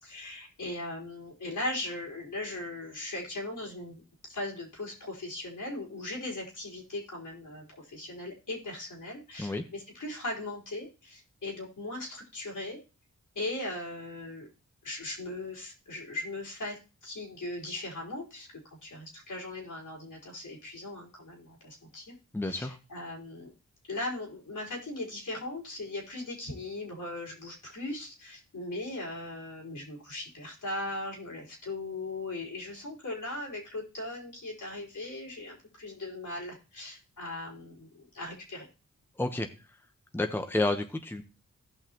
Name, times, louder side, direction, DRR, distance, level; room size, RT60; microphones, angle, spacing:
voice 1, 0.0-12.8 13.3-14.5 14.8-22.1 22.4-23.5 23.9-38.7, left 2 dB, 70° left, -3 dB, 4.1 m, -39 dB
voice 2, 22.3-22.8 39.2-39.5 40.1-41.2, left 2 dB, 5° left, 6 dB, 1.0 m, -30 dB
16.5 x 5.6 x 3.0 m, 0.32 s
cardioid pair, 60°, 32 cm